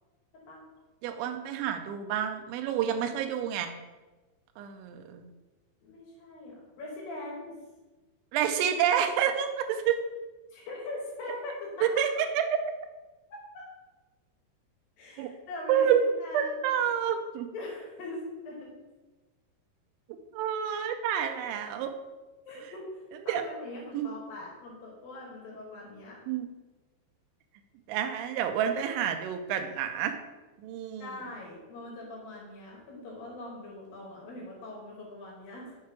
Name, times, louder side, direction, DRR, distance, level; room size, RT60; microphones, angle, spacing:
voice 1, 1.0-3.7 4.6-5.3 8.3-10.0 12.0-12.1 12.3-12.6 15.2-15.3 15.7-16.0 16.3-17.5 20.3-21.9 23.3-23.4 23.9-24.1 26.3-26.5 27.9-30.1 30.6-31.1, right 9 dB, 85° right, 6 dB, 2.8 m, -28 dB
voice 2, 5.8-7.6 10.5-11.7 11.9-12.0 13.3-13.6 15.0-16.6 17.5-18.7 20.7-20.8 22.4-26.2 31.0-35.7, left 2 dB, 65° left, -3 dB, 2.5 m, -41 dB
7.5 x 4.6 x 4.8 m, 1.2 s
omnidirectional pair, 5.8 m